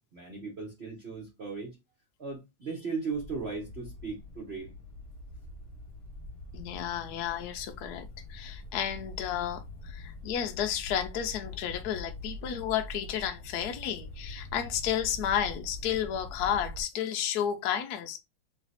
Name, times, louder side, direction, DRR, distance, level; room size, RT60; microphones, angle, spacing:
voice 1, 0.1-1.7 2.2-4.7, right 4 dB, 40° right, 1.0 m, -37 dB
sound 1, 3.1-16.8, left 1 dB, 35° left, 1.2 m, -44 dB
voice 2, 6.5-18.2, left 9 dB, 75° left, 0.9 m, -32 dB
3.3 x 3.1 x 3.9 m
omnidirectional pair, 2.2 m